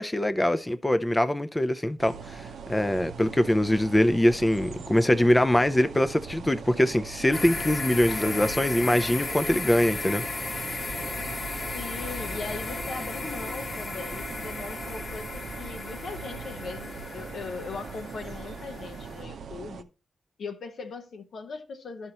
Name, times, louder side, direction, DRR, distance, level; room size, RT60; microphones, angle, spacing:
voice 1, 0.0-10.2, left 1 dB, 20° left, 0.5 m, -23 dB
sound 1, 2.0-19.8, right 6 dB, 75° right, 0.6 m, -41 dB
sound 2, 7.3-19.2, left 2 dB, 55° left, 1.3 m, -35 dB
voice 2, 8.1-8.6 11.7-19.9 20.4-22.1, left 4 dB, 70° left, 0.9 m, -39 dB
11.5 x 5.5 x 2.9 m
supercardioid pair, 40°, 0 cm